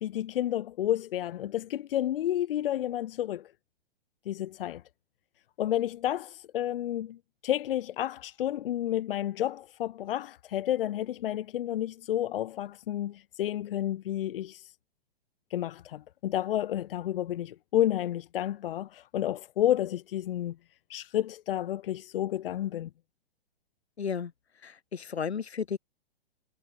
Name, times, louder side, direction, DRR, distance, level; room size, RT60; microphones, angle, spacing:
voice 1, 0.0-3.5 4.3-4.8 5.6-7.2 7.4-14.7 15.5-20.6 20.9-22.9, left 12 dB, 60° left, 1.3 m, -30 dB
voice 2, 24.0-24.3 24.6-25.8, left 6 dB, 85° left, 2.8 m, -33 dB
hypercardioid pair, 130°, 31 cm